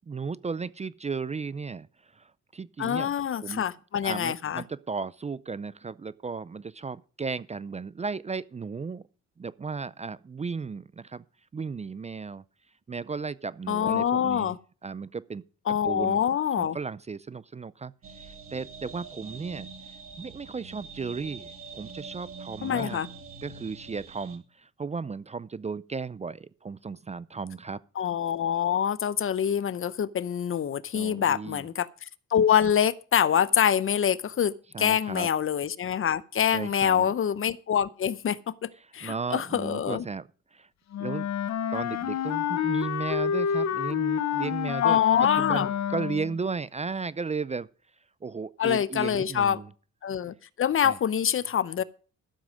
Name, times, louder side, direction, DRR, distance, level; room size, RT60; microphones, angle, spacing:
voice 1, 0.1-1.9 2.1-3.1 3.4-3.6 4.0-9.0 9.4-11.2 11.5-12.4 12.9-14.5 14.8-15.4 15.8-16.2 16.5-17.9 18.2-19.7 20.2-23.0 23.4-27.8 30.9-31.7 34.7-35.3 36.5-37.1 39.0-40.7 41.0-41.3 41.7-47.7 48.2-49.7 50.8-51.0, right 5 dB, 20° right, 0.5 m, -35 dB
voice 2, 2.8-4.6 13.7-14.6 15.7-16.8 22.6-23.1 28.0-40.0 44.8-45.7 48.6-49.6 50.0-51.8, left 9 dB, 45° left, 0.7 m, -25 dB
sound 1, 18.0-24.4, right 5 dB, 45° right, 2.5 m, -44 dB
Wind instrument woodwind instrument, 40.9-46.4, left 8 dB, 65° left, 1.0 m, -29 dB
13.0 x 7.4 x 6.2 m
cardioid pair, 90°, 30 cm